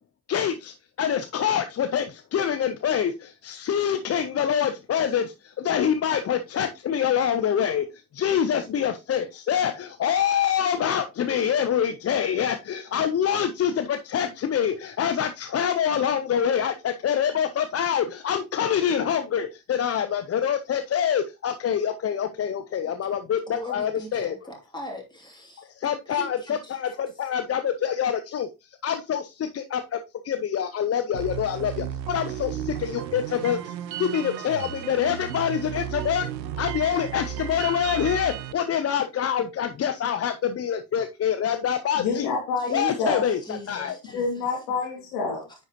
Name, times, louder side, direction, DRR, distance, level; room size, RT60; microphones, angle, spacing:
voice 1, 0.3-24.4 25.6-33.7 34.0-36.3 36.6-42.3 42.7-44.0, left 8 dB, 30° left, 0.6 m, -26 dB
voice 2, 23.5-25.7 26.1-26.8 42.6-44.5, equal, 10° left, 2.7 m, -38 dB
sound 1, 31.1-38.5, right 10 dB, 85° right, 0.6 m, -34 dB
voice 3, 42.0-43.2 44.1-45.5, left 4 dB, 75° left, 2.3 m, -28 dB
9.5 x 4.1 x 2.9 m
figure-of-eight pair, 45°, 50 cm